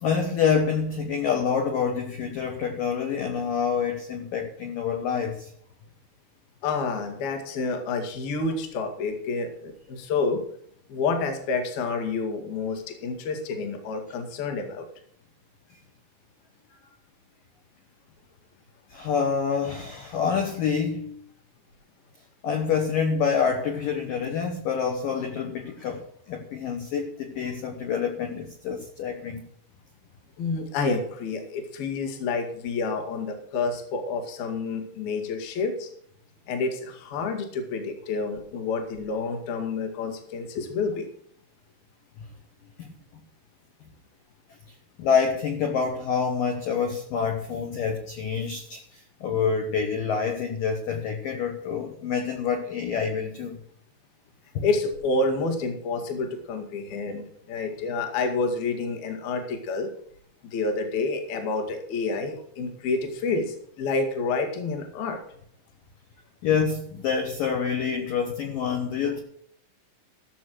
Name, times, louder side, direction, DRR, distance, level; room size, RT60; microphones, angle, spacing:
voice 1, 0.0-5.5 18.9-21.2 22.4-29.4 42.8-42.9 45.0-53.6 54.5-54.7 66.4-69.2, left 6 dB, 80° left, 3 dB, 2.0 m, -27 dB
voice 2, 6.6-10.4 10.9-14.9 30.4-35.9 36.5-41.1 54.6-59.9 60.4-65.2, left 4 dB, 55° left, 5 dB, 3.3 m, -29 dB
14.5 x 7.0 x 6.3 m, 0.64 s
omnidirectional pair, 5.8 m